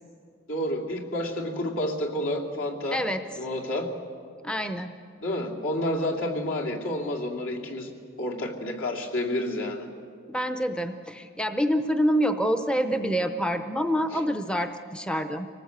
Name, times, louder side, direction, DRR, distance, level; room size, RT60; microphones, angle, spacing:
voice 1, 0.5-3.0 3.4-3.9 5.2-7.9 8.2-9.9 14.1-14.2, left 1 dB, 75° left, -1 dB, 2.8 m, -29 dB
voice 2, 4.4-4.9 10.3-15.5, equal, 5° left, 8 dB, 0.6 m, -26 dB
25.5 x 19.0 x 8.1 m, 2.3 s
head